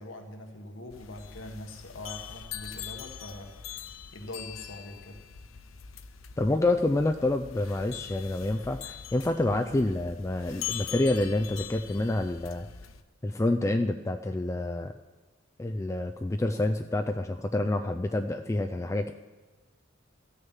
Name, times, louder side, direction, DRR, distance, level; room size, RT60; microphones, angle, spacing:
voice 1, 0.0-3.9 4.1-5.2 9.5-9.7, left 1 dB, 70° left, 4 dB, 1.6 m, -43 dB
sound 1, 0.9-13.0, left 9 dB, 90° left, 0.6 m, -42 dB
voice 2, 6.4-12.7 13.2-14.9 15.6-19.1, left 2 dB, 15° left, 6 dB, 0.4 m, -28 dB
14.0 x 6.6 x 7.2 m, 1.3 s
head